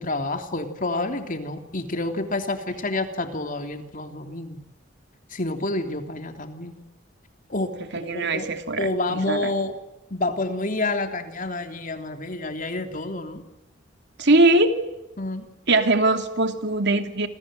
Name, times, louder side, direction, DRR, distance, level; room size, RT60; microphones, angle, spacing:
voice 1, 0.0-4.6 5.3-6.7 7.5-8.5 8.8-9.7 10.1-13.4 15.2-15.5, left 2 dB, 45° left, 6 dB, 3.2 m, -28 dB
voice 2, 7.9-9.5 14.2-14.7 15.7-17.3, right 2 dB, 60° right, 7 dB, 2.9 m, -21 dB
28.0 x 27.5 x 7.7 m, 0.96 s
head